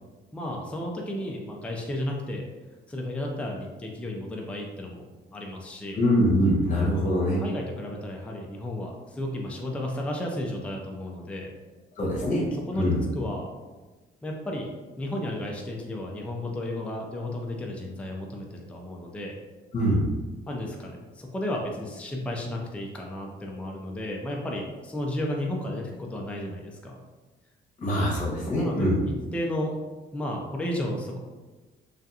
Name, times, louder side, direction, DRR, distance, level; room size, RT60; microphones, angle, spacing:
voice 1, 0.3-2.4 2.9-5.0 5.3-6.0 7.4-11.5 12.7-13.5 14.2-14.7 15.0-19.4 20.5-27.0 28.4-29.7 30.1-31.2, left 1 dB, 5° left, 0 dB, 0.4 m, -33 dB
voice 2, 5.9-7.4 12.0-12.4 12.7-13.0 19.7-20.0 27.8-29.0, equal, 40° left, -4 dB, 0.9 m, -23 dB
2.7 x 2.4 x 2.3 m, 1.2 s
cardioid pair, 90°, 20 cm